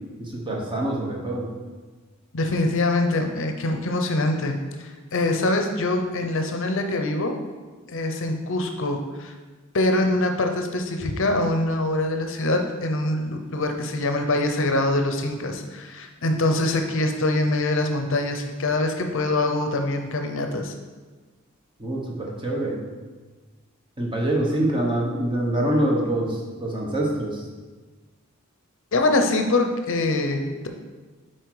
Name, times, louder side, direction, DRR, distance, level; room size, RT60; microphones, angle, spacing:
voice 1, 0.2-1.5 21.8-22.8 24.0-27.4, right 1 dB, 20° right, -2 dB, 1.2 m, -25 dB
voice 2, 2.3-7.4 7.9-9.3 9.7-20.7 28.9-30.5, left 2 dB, 60° left, 5 dB, 0.7 m, -24 dB
8.0 x 4.4 x 4.8 m, 1.3 s
head